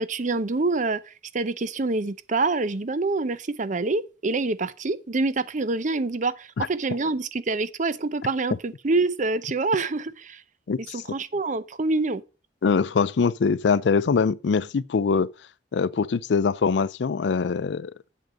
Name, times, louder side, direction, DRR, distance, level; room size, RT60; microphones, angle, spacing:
voice 1, 0.0-10.4 10.9-12.2, right 3 dB, 45° right, 0.6 m, -26 dB
voice 2, 10.7-11.0 12.6-15.3 15.7-17.9, left 5 dB, 75° left, 0.4 m, -23 dB
7.8 x 7.7 x 5.1 m
head